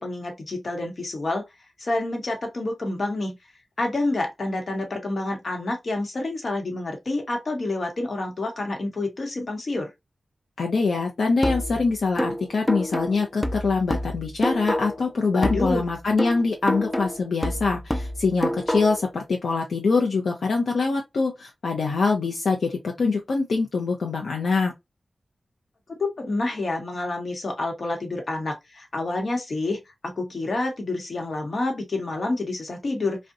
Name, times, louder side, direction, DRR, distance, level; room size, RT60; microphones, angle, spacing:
voice 1, 0.0-1.4 1.8-3.4 3.8-9.9 15.3-15.8 25.9-33.2, left 2 dB, 60° left, 0.9 m, -28 dB
voice 2, 10.6-24.7, left 4 dB, 85° left, 0.5 m, -24 dB
sound 1, 11.4-15.1 15.4-19.1, equal, 10° left, 0.4 m, -28 dB
2.6 x 2.1 x 2.4 m
wide cardioid pair, 75°, 0 cm